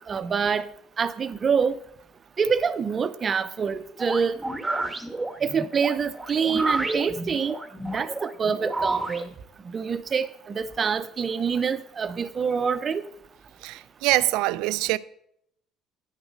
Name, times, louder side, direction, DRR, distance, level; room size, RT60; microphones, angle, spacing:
voice 1, 0.1-0.6 1.0-1.8 2.4-4.4 5.4-7.5 7.9-9.3 9.7-13.0, right 6 dB, 40° right, 0.8 m, -26 dB
sound 1, 4.0-9.3, right 2 dB, 15° right, 1.4 m, -30 dB
voice 2, 13.6-15.0, right 17 dB, 75° right, 0.4 m, -24 dB
10.5 x 6.3 x 4.8 m
supercardioid pair, 75°, 0 cm